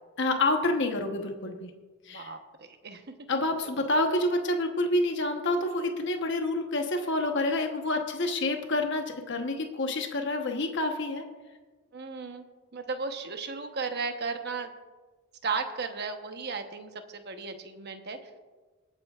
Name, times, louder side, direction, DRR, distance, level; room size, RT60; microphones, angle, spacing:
voice 1, 0.2-1.7 2.1-2.3 3.3-11.2, left 2 dB, 55° left, 4 dB, 1.1 m, -28 dB
voice 2, 2.1-3.0 3.6-3.7 11.9-12.4 12.7-14.7 15.4-18.2, right 4 dB, 50° right, 6 dB, 1.0 m, -35 dB
26.5 x 9.0 x 2.4 m, 1.3 s
head